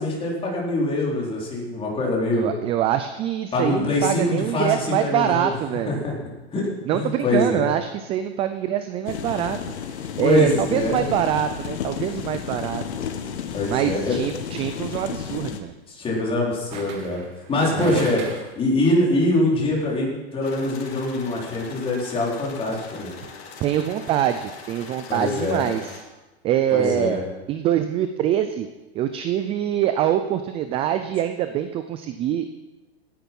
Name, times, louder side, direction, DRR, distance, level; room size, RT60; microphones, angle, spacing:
voice 1, 0.0-2.5 3.5-5.5 5.9-6.1 6.5-6.7 6.9-7.7 10.2-11.0 13.5-14.2 15.9-17.2 17.5-18.2 18.6-23.1 25.1-25.6 26.7-27.2, left 2 dB, 15° left, -3 dB, 4.2 m, -23 dB
voice 2, 2.3-6.0 6.8-12.8 13.7-15.7 17.7-18.1 23.6-26.0 26.4-27.2 27.5-28.7 28.9-32.5, right 11 dB, 20° right, 9 dB, 0.4 m, -24 dB
sound 1, 9.1-15.6, left 7 dB, 85° left, 1.7 m, -32 dB
sound 2, 14.1-14.4 16.7-18.7 19.0-19.1, right 5 dB, 35° right, 2.3 m, -38 dB
sound 3, 20.4-26.0, left 5 dB, 65° left, 3.4 m, -42 dB
17.0 x 10.5 x 5.5 m, 1.1 s
hypercardioid pair, 145°, 33 cm